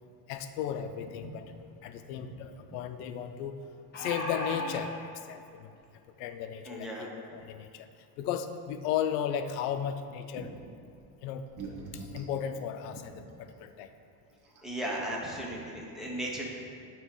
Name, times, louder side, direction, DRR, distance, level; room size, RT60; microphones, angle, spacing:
voice 1, 0.3-1.5 1.8-3.6 4.0-5.7 6.2-7.9 8.2-10.5 11.2-11.5 11.9-13.9, left 9 dB, 85° left, 9 dB, 0.6 m, -35 dB
sound 1, 1.5-1.6 1.9-2.0 3.6-4.8 5.8-5.9 6.3-6.4, left 1 dB, 20° left, 1.0 m, -35 dB
voice 2, 6.7-7.1 10.4-10.5 14.6-16.4, right 1 dB, ahead, -4 dB, 0.7 m, -36 dB
sound 2, 11.0-11.1 11.4-12.4 13.5-13.6 14.1-14.2 14.4-14.9, right 3 dB, 40° right, 1.0 m, -43 dB
8.9 x 3.0 x 4.9 m, 2.4 s
cardioid pair, 145°, 46 cm